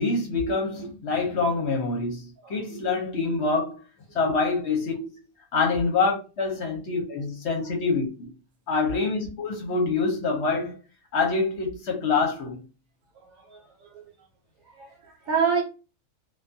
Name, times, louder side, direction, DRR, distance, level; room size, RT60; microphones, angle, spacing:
voice 1, 0.0-3.8 4.1-5.1 5.5-8.3 8.7-10.7 11.1-12.6, left 4 dB, 60° left, 0.8 m, -26 dB
voice 2, 2.4-2.9 13.2-14.0 14.7-15.6, right 6 dB, 70° right, 1.1 m, -29 dB
2.3 x 2.2 x 2.5 m
omnidirectional pair, 1.5 m